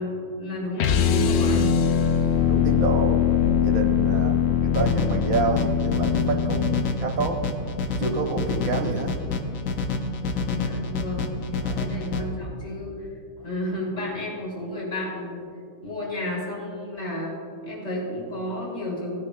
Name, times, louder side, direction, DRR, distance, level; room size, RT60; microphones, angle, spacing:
voice 1, 0.0-1.7 10.3-11.3 11.6-13.1 13.4-15.5 15.8-17.4 17.6-19.2, left 1 dB, 25° left, -5 dB, 2.9 m, -32 dB
sound 1, 0.8-6.9, left 8 dB, 80° left, 0.5 m, -22 dB
voice 2, 2.5-3.2 3.6-7.4 8.0-9.1 11.6-11.9, right 3 dB, 65° right, 3 dB, 1.4 m, -28 dB
sound 2, 4.7-12.2, left 3 dB, 60° left, 1.1 m, -28 dB
18.5 x 9.8 x 2.2 m, 2.4 s
omnidirectional pair, 1.7 m